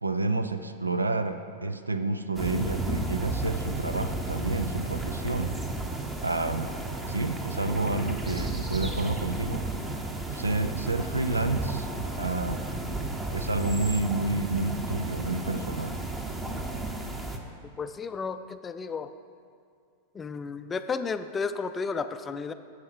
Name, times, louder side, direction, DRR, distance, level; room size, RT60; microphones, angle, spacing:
voice 1, 0.0-5.6 6.2-6.7 7.1-9.6 10.3-11.9 12.2-12.7 13.3-16.0, right 2 dB, 80° right, 10 dB, 0.5 m, -29 dB
sound 1, 2.4-17.4, right 2 dB, 15° right, 1.0 m, -33 dB
voice 2, 17.8-19.1 20.1-22.5, left 5 dB, 20° left, 10 dB, 0.4 m, -33 dB
11.5 x 7.4 x 4.7 m, 2.3 s
figure-of-eight pair, 90°, 0 cm